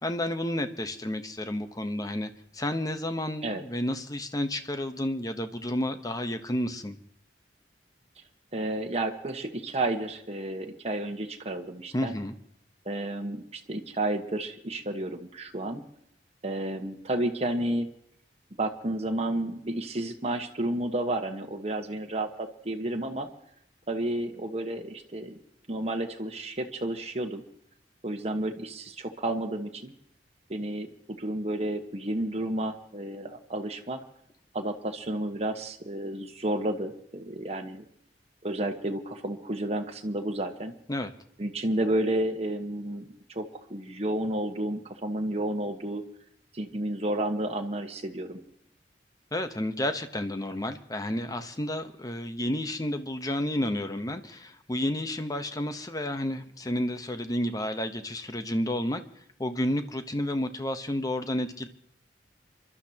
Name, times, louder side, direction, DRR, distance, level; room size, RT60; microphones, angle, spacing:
voice 1, 0.0-7.0 11.9-12.3 40.9-41.1 49.3-59.0 59.4-61.7, left 1 dB, 20° left, 9 dB, 1.0 m, -31 dB
voice 2, 8.5-12.2 12.8-15.8 16.4-17.9 18.6-23.3 23.9-25.4 25.7-27.4 28.0-29.9 30.5-30.9 31.2-34.0 34.5-37.8 38.4-40.7 41.4-46.0 46.5-48.4, right 1 dB, 35° right, 3 dB, 1.3 m, -31 dB
28.0 x 12.5 x 2.9 m, 0.72 s
head